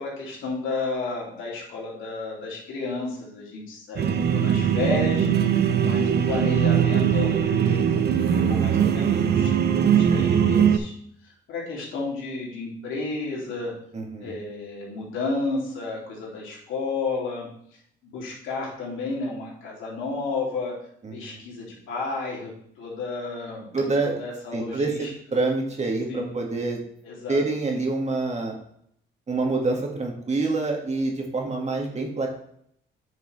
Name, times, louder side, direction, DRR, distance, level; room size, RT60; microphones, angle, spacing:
voice 1, 0.0-10.9 11.2-13.7 14.2-17.5 18.0-20.7 21.1-22.5 22.8-23.7 24.0-25.1 26.1-26.3 27.0-27.4, left 3 dB, 85° left, -4 dB, 2.9 m, -32 dB
sound 1, 4.0-10.8, right 8 dB, 55° right, 0.7 m, -21 dB
voice 2, 13.9-14.3 21.0-21.4 23.7-24.2 24.5-26.8 27.3-28.5 29.3-32.3, right 3 dB, 35° right, 1 dB, 2.0 m, -26 dB
9.4 x 5.3 x 3.4 m, 0.69 s
cardioid pair, 90°, 20 cm